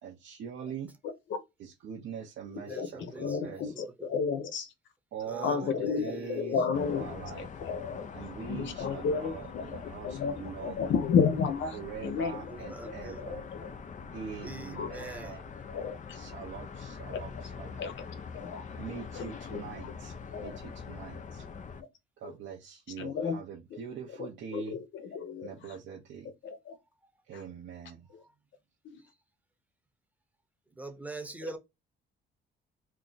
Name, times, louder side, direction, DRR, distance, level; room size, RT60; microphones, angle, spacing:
voice 1, 0.0-0.9 1.6-3.7 5.1-7.5 8.1-10.8 11.7-13.5 14.1-15.4 16.1-17.9 18.8-20.1 20.4-21.5 22.2-24.8 25.4-26.3 27.3-28.1, right 7 dB, 75° right, 0.9 m, -43 dB
voice 2, 2.5-4.2 5.2-6.4 12.4-13.4 14.4-15.4 29.0-29.1 30.7-31.6, right 2 dB, 5° right, 0.9 m, -44 dB
voice 3, 3.2-4.7 5.4-8.1 8.5-11.8 12.0-12.4 12.8-13.7 14.8-15.0 15.7-16.2 17.8-17.9 18.3-18.6 19.2-19.3 19.5-19.6 20.3-20.5 23.0-23.4 24.2-25.5 26.4-26.8 28.8-29.0, left 6 dB, 70° left, 0.8 m, -32 dB
sound 1, 6.7-21.8, left 5 dB, 40° left, 0.6 m, -44 dB
2.8 x 2.4 x 3.9 m
cardioid pair, 90°, 20 cm